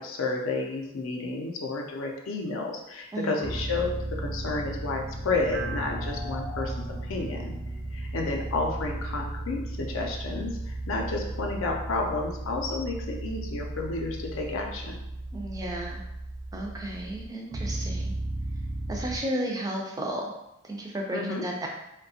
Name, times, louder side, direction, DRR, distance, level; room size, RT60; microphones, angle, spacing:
voice 1, 0.0-7.6 7.9-15.0 21.1-21.5, left 3 dB, 65° left, 1 dB, 0.5 m, -31 dB
voice 2, 3.1-3.4 15.3-16.0 16.5-18.1 18.9-20.3 20.6-21.7, right 1 dB, 15° right, 0 dB, 0.3 m, -33 dB
sound 1, 3.4-19.2, right 1 dB, 65° right, 0.6 m, -35 dB
2.7 x 2.2 x 2.7 m, 0.86 s
head